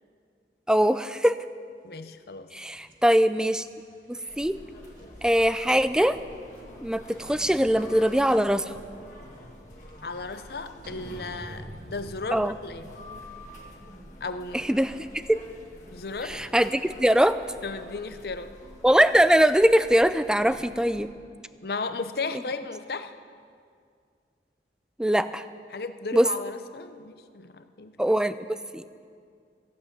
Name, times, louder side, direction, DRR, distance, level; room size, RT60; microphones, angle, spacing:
voice 1, 0.7-1.4 2.5-3.7 4.1-4.6 5.2-6.2 6.8-8.7 12.3-12.5 14.5-15.2 16.2-17.4 18.8-21.1 25.0-25.5 26.1-26.3 28.0-29.0, equal, 5° right, 12 dB, 0.3 m, -22 dB
voice 2, 1.8-2.5 10.0-12.9 14.2-14.7 15.9-16.4 17.6-18.5 21.6-23.1 25.7-28.1, left 3 dB, 60° left, 10 dB, 0.7 m, -35 dB
sound 1, 2.7-16.0, equal, 50° right, 1.8 m, -50 dB
sound 2, 4.3-21.0, left 1 dB, 45° left, 1.7 m, -47 dB
15.0 x 8.3 x 8.7 m, 2.2 s
head